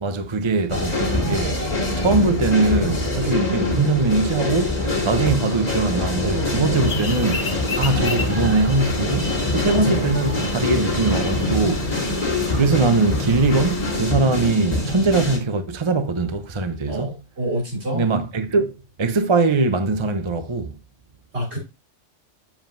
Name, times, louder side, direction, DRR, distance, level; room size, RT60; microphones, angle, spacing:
voice 1, 0.0-1.6 2.0-11.9 12.5-17.2 17.9-20.8, right 3 dB, 30° right, 0.6 m, -21 dB
sound 1, 0.7-15.4, left 2 dB, 35° left, 2.0 m, -24 dB
sound 2, 6.7-14.0, left 6 dB, 50° left, 0.4 m, -33 dB
voice 2, 9.6-10.0 16.9-18.1 21.3-21.6, right 1 dB, 60° right, 3.8 m, -27 dB
7.4 x 7.3 x 2.6 m
omnidirectional pair, 1.2 m